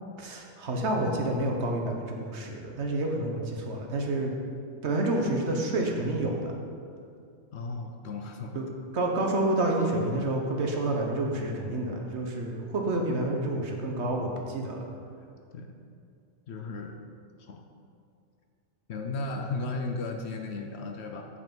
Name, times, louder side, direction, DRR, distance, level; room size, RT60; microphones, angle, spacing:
voice 1, 0.2-4.3 4.8-6.5 8.5-8.7 8.9-14.8, right 2 dB, 60° right, 1 dB, 1.2 m, -29 dB
voice 2, 7.5-8.6 15.5-15.7 16.5-17.0 17.5-17.6 18.9-21.3, left 3 dB, 60° left, 4 dB, 0.8 m, -35 dB
8.2 x 5.7 x 5.3 m, 2.4 s
omnidirectional pair, 1.4 m